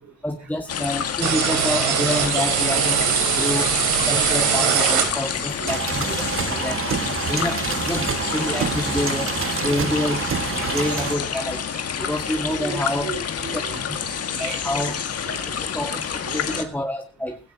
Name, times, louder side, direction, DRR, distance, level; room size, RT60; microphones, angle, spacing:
voice 1, 0.2-3.7 4.1-7.0 7.3-10.2 10.7-11.6 12.0-13.1 13.5-13.6 13.9-14.0 14.4-15.0 15.6-17.4, left 1 dB, 5° left, 3 dB, 1.9 m, -28 dB
sound 1, 0.7-16.6, left 7 dB, 55° left, 1.9 m, -28 dB
sound 2, 1.2-5.6, right 8 dB, 80° right, 2.9 m, -22 dB
voice 2, 3.0-3.8 4.1-4.3 5.3-6.3 6.6-6.7 7.2-7.6 7.9-8.1 9.4-9.7 10.6-11.0 11.3-11.4 11.7-15.0 15.2-15.7 16.2-16.7, right 5 dB, 65° right, 0 dB, 3.7 m, -39 dB
sound 3, 5.7-11.1, right 7 dB, 45° right, 1.3 m, -27 dB
16.5 x 16.5 x 2.8 m, 0.32 s
cardioid pair, 90°, 30 cm